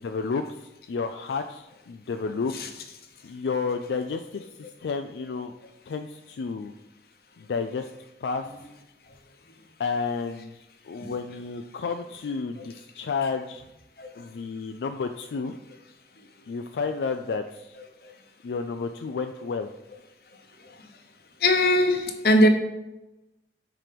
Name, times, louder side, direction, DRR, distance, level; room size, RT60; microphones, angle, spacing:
voice 1, 0.0-2.7 3.2-5.5 5.9-6.7 7.4-7.9 8.2-8.5 9.8-13.6 14.2-15.5 16.5-17.8 18.4-19.7, left 5 dB, 80° left, 6 dB, 0.4 m, -31 dB
voice 2, 21.4-22.5, left 1 dB, 60° left, 5 dB, 0.9 m, -20 dB
5.9 x 4.5 x 5.0 m, 0.97 s
head